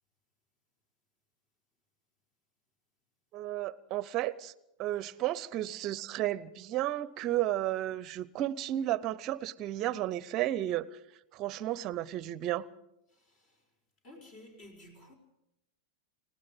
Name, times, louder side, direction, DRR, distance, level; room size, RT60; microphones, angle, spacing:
voice 1, 3.3-4.5 4.8-10.9 11.3-12.7, right 14 dB, 35° right, 0.7 m, -33 dB
voice 2, 13.1-13.7 14.0-15.1, left 1 dB, 40° left, 4.9 m, -54 dB
30.0 x 17.0 x 5.3 m
figure-of-eight pair, 90°, 0 cm